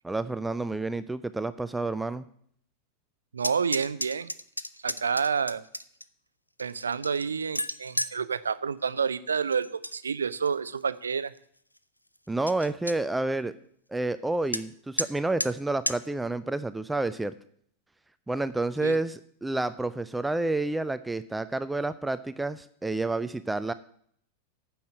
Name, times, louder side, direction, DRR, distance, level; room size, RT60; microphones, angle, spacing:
voice 1, 0.0-2.2 12.3-13.5 13.9-17.3 18.3-23.7, right 2 dB, 5° right, 13 dB, 0.4 m, -29 dB
voice 2, 3.3-4.3 4.8-5.6 6.6-11.3 18.8-18.9, right 6 dB, 70° right, 16 dB, 0.5 m, -29 dB
sound 1, 3.4-6.0 6.6-8.2 9.5-10.0 10.3-10.8 11.3-11.4 11.8-11.9 12.2-12.3 12.5-13.0 14.5-14.6 15.0-15.1 15.4-15.5 15.9-16.0, left 1 dB, 85° left, 0.5 m, -33 dB
9.3 x 7.1 x 8.4 m, 0.63 s
figure-of-eight pair, 90°, 0 cm